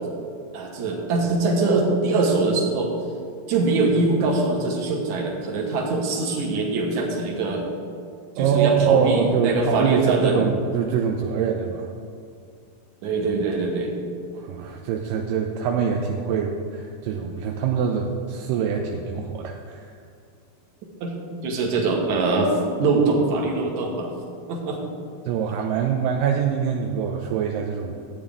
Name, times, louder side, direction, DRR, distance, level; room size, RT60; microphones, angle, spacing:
voice 1, 0.5-2.9 3.5-7.6 8.4-10.4 13.0-14.0 21.0-21.1 21.4-24.1 24.5-24.8, right 3 dB, 60° right, -1 dB, 2.5 m, -23 dB
voice 2, 8.4-11.9 14.3-19.9 25.3-28.0, right 7 dB, 80° right, 2 dB, 2.1 m, -24 dB
13.5 x 8.5 x 3.6 m, 2.3 s
omnidirectional pair, 4.1 m